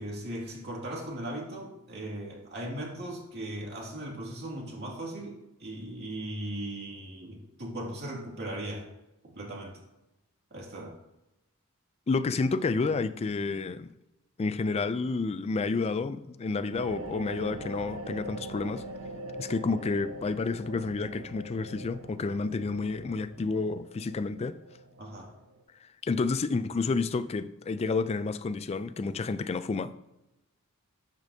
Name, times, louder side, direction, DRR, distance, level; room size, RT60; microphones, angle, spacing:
voice 1, 0.0-8.8 9.3-9.7 10.5-10.9 25.0-25.3, right 1 dB, 50° right, 2.3 m, -38 dB
voice 2, 12.1-13.9 14.4-18.8 19.4-24.6 26.0-30.1, left 4 dB, 30° left, 0.3 m, -30 dB
sound 1, 16.7-25.6, right 1 dB, 80° right, 0.8 m, -42 dB
12.0 x 5.1 x 2.8 m
head